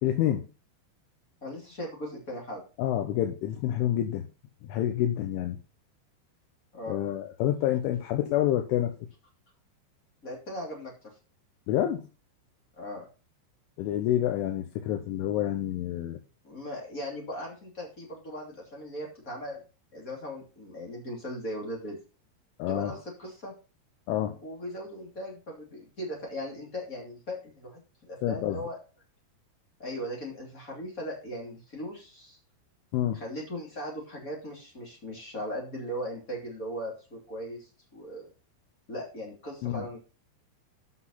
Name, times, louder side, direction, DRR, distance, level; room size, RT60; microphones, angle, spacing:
voice 1, 0.0-0.4 2.8-4.3 4.6-5.6 6.9-8.9 11.7-12.1 13.8-16.2 22.6-23.0 24.1-24.4 28.2-28.6 32.9-33.2 39.6-39.9, left 12 dB, 85° left, 5 dB, 3.3 m, -28 dB
voice 2, 1.4-2.6 6.7-7.0 10.2-11.1 12.8-13.1 16.4-19.6 19.9-22.0 22.7-23.5 24.4-28.8 29.8-32.4 33.1-38.3 38.9-40.0, equal, 25° left, -2 dB, 2.3 m, -38 dB
8.0 x 6.0 x 5.7 m, 0.33 s
omnidirectional pair, 5.5 m